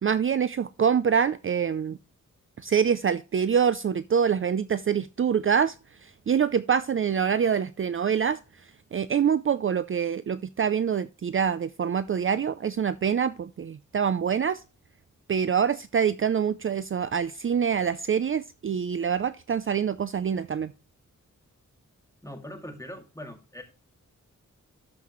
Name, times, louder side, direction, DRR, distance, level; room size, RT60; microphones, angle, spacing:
voice 1, 0.0-2.0 2.6-5.8 6.0-14.6 15.3-20.7, right 7 dB, 45° right, 0.4 m, -25 dB
voice 2, 22.2-23.6, left 1 dB, 10° left, 2.0 m, -41 dB
13.0 x 5.7 x 3.0 m
wide cardioid pair, 110°, 31 cm